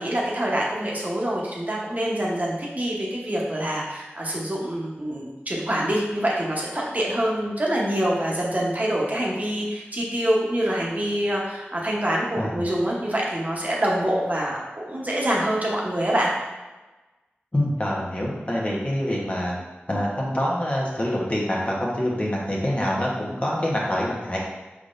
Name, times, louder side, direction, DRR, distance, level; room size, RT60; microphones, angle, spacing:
voice 1, 0.0-16.3, right 1 dB, 40° right, -4 dB, 0.9 m, -25 dB
voice 2, 17.5-19.6 19.9-24.4, equal, 30° left, -4 dB, 1.0 m, -25 dB
5.0 x 3.6 x 2.5 m, 1.2 s
wide cardioid pair, 60°, 4 cm